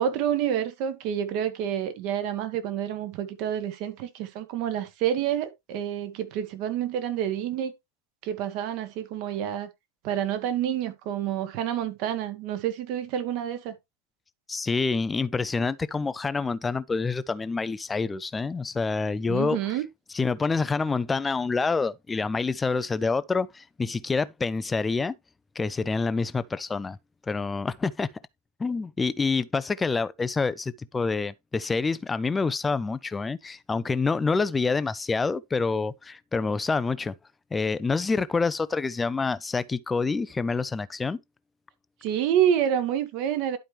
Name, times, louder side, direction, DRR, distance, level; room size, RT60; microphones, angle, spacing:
voice 1, 0.0-7.7 8.2-9.7 10.0-13.7 19.3-19.8 42.0-43.6, right 10 dB, 45° right, 1.5 m, -28 dB
voice 2, 14.5-19.6 20.1-25.1 25.6-27.0 27.3-28.1 28.6-37.1 37.5-41.2, left 4 dB, 15° left, 0.5 m, -27 dB
11.5 x 4.9 x 3.2 m
figure-of-eight pair, 90°, 0 cm